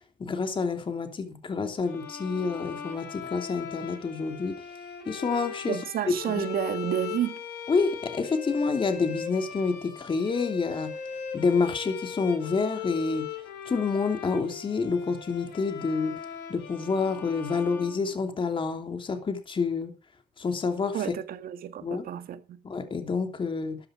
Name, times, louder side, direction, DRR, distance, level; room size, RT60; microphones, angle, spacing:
voice 1, 0.2-4.5 5.1-5.8 6.1-6.5 7.7-10.9 11.3-13.3 13.7-16.1 16.5-19.9 20.4-21.0 21.8-22.0 22.6-23.8, left 4 dB, 30° left, 3.0 m, -28 dB
sound 1, 1.8-18.7, left 7 dB, 75° left, 4.1 m, -39 dB
voice 2, 5.7-7.4 20.9-22.6, right 10 dB, 60° right, 1.8 m, -31 dB
13.5 x 10.5 x 5.0 m
cardioid pair, 110°, 17 cm